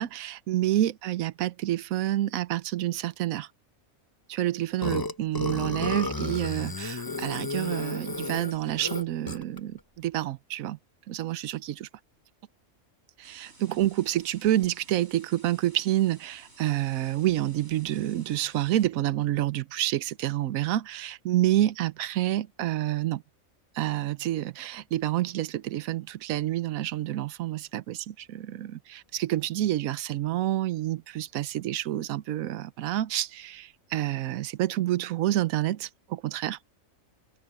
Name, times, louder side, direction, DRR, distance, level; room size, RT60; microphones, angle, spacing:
voice 1, 0.0-3.5 4.3-10.8 11.1-11.9 13.2-23.2 23.7-36.6, right 13 dB, 80° right, 1.1 m, -28 dB
Burping eructation, 4.8-9.6, left 2 dB, 20° left, 0.7 m, -32 dB
sound 1, 13.2-18.9, right 2 dB, 50° right, 4.4 m, -55 dB
omnidirectional pair, 1.5 m